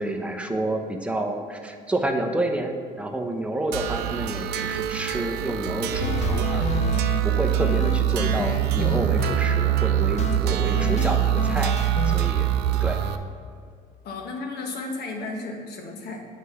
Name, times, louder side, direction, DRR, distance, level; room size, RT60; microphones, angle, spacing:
voice 1, 0.0-6.8 7.2-13.0, right 1 dB, 5° right, 3 dB, 0.8 m, -29 dB
sound 1, 3.7-13.2, right 11 dB, 80° right, 0.5 m, -24 dB
sound 2, 6.0-7.2 7.6-9.4 10.2-10.4 10.8-12.2, left 6 dB, 40° left, 0.5 m, -30 dB
voice 2, 14.0-16.2, left 3 dB, 70° left, 2 dB, 1.3 m, -33 dB
8.3 x 4.9 x 5.6 m, 2.3 s
cardioid pair, 110°, 17 cm